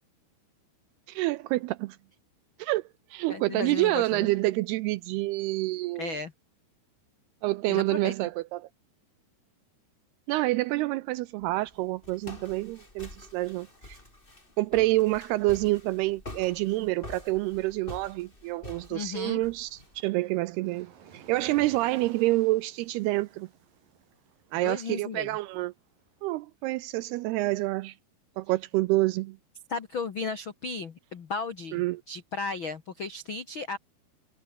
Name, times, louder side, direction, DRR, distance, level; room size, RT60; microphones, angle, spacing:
voice 1, 1.1-2.0 2.6-2.8 3.1-6.2 7.4-8.7 10.3-14.0 14.6-23.5 24.5-25.7 26.2-28.0 28.4-29.4 31.7-32.0, right 19 dB, 85° right, 2.4 m, -28 dB
voice 2, 3.3-4.3 6.0-6.3 7.7-8.1 18.9-19.4 24.6-25.4 29.7-33.8, left 4 dB, 90° left, 1.1 m, -35 dB
Walk footsteps, 11.4-20.0, left 2 dB, 10° left, 3.9 m, -47 dB
Waves surf, 19.1-26.3, right 8 dB, 55° right, 4.3 m, -54 dB
omnidirectional pair, 5.1 m